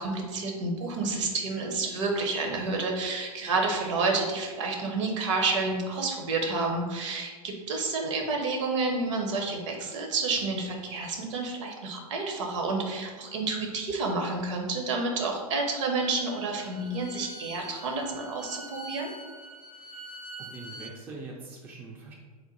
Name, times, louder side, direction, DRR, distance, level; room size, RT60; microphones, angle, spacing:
voice 1, 0.0-19.1, right 3 dB, 50° right, 1 dB, 0.8 m, -29 dB
Bowed string instrument, 15.6-20.9, right 1 dB, 85° right, 0.6 m, -45 dB
voice 2, 19.7-22.1, right 3 dB, 10° right, -1 dB, 0.4 m, -44 dB
3.6 x 2.5 x 3.9 m, 1.5 s
figure-of-eight pair, 100°, 20 cm